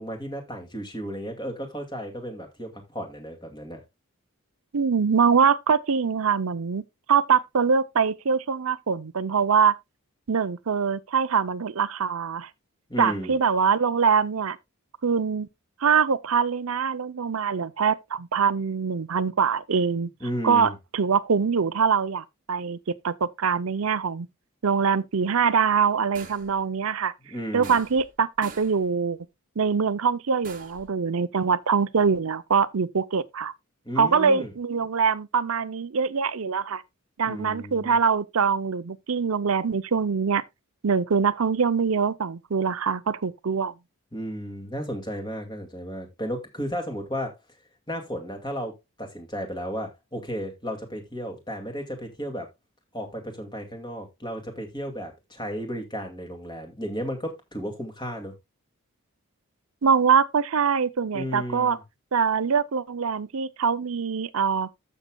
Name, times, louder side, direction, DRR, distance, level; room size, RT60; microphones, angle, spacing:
voice 1, 0.0-3.8 12.9-13.4 20.2-20.7 27.3-27.8 33.9-34.5 37.2-37.9 44.1-47.4 47.9-52.5 52.9-58.3 61.1-61.8, equal, 20° left, 2.2 m, -34 dB
voice 2, 4.7-6.8 7.1-9.7 10.3-12.5 13.0-14.6 15.0-15.5 15.8-20.1 20.4-22.8 23.0-24.3 24.6-27.1 27.5-29.2 29.6-33.5 34.0-36.8 37.2-40.4 40.8-43.7 59.8-61.8 62.1-64.7, right 6 dB, 80° right, 0.6 m, -23 dB
sound 1, 26.1-26.6 27.6-28.1 28.4-28.8 30.4-30.9, right 5 dB, 40° right, 1.2 m, -44 dB
13.5 x 6.5 x 2.3 m
head